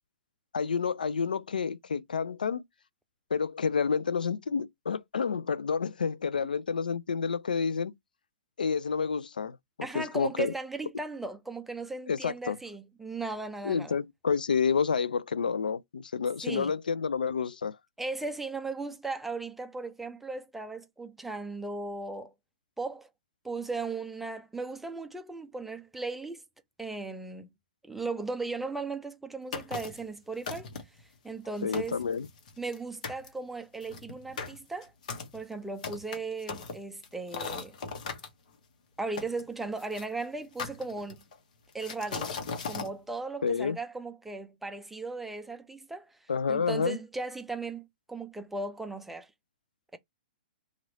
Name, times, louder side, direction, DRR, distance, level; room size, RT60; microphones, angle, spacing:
voice 1, 0.5-2.6 3.3-7.9 8.6-10.5 12.1-12.6 13.6-17.8 31.6-32.3 43.4-43.8 46.3-47.0, left 6 dB, 80° left, 0.4 m, -29 dB
voice 2, 9.8-14.0 16.4-16.7 18.0-22.3 22.8-23.1 23.4-26.4 26.8-27.5 27.8-30.7 31.2-32.0 32.6-34.9 35.3-37.7 39.0-41.2 41.7-42.3 42.7-46.2 46.5-49.3 49.9-50.0, right 3 dB, 5° right, 0.5 m, -37 dB
sound 1, 29.5-30.1 30.5-31.0 31.4-31.5 31.7-32.8 33.0-33.3 33.8-38.3 39.2-40.1 40.6-41.3 41.8-42.9, left 5 dB, 65° left, 1.1 m, -38 dB
3.1 x 2.5 x 4.0 m
hypercardioid pair, 115°, 5 cm